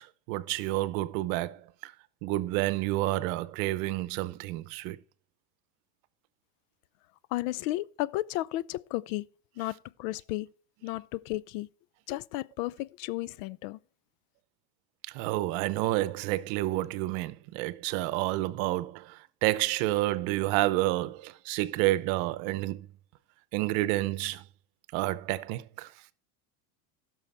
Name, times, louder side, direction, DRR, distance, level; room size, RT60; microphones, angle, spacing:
voice 1, 0.0-1.9 2.2-5.0 15.1-22.9 23.5-24.4 24.9-25.9, right 17 dB, 60° right, 0.8 m, -29 dB
voice 2, 7.3-9.3 9.6-10.5 10.8-11.7 12.1-13.8, left 17 dB, 60° left, 0.5 m, -33 dB
16.0 x 6.4 x 3.4 m
supercardioid pair, 130°, 43 cm